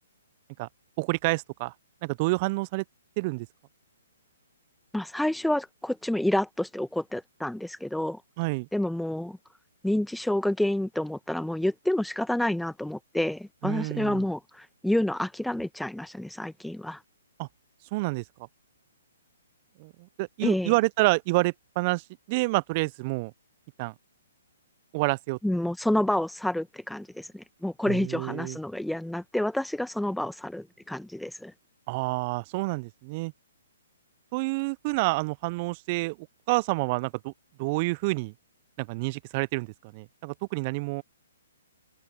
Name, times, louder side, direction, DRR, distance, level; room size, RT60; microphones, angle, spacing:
voice 1, 1.0-1.7 2.0-2.8 3.2-3.5 8.4-8.7 13.6-14.2 17.4-17.5 17.9-18.2 19.8-23.3 23.8-23.9 24.9-25.4 27.9-28.6 31.9-33.3 34.3-36.2 36.5-37.3 37.6-38.3 38.8-41.0, right 25 dB, 35° right, 0.6 m, -28 dB
voice 2, 4.9-8.2 8.7-9.4 9.8-17.0 20.4-20.7 25.4-31.5, left 1 dB, ahead, 1.5 m, -29 dB
open air
figure-of-eight pair, 125°, 0 cm